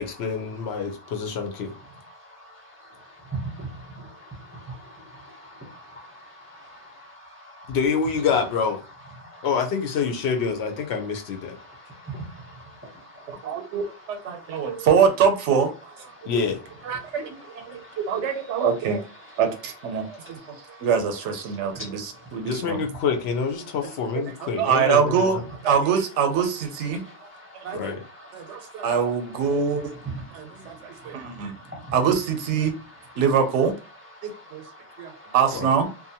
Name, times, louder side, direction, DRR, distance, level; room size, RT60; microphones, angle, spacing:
voice 1, 0.0-1.7 7.7-8.8 9.4-11.6 16.2-16.6 22.4-25.4 27.7-28.0 35.5-35.7, left 6 dB, 70° left, 0.8 m, -26 dB
voice 2, 5.2-7.7 9.2-9.5 11.6-13.7 14.3-14.8 17.7-18.0 21.7-21.9 27.0-27.8 28.4-28.8 30.4-31.9 34.3-35.3, right 1 dB, 15° right, 0.5 m, -44 dB
voice 3, 13.3-16.3 16.9-17.8 18.1-19.1 19.4-20.4 20.7-22.8 24.4-25.4 25.6-27.0 27.6-27.9 28.3-30.0 30.3-31.5 31.9-32.7 33.2-33.7 34.2-34.6 35.0-35.9, right 6 dB, 90° right, 0.9 m, -24 dB
2.6 x 2.1 x 2.7 m
omnidirectional pair, 1.2 m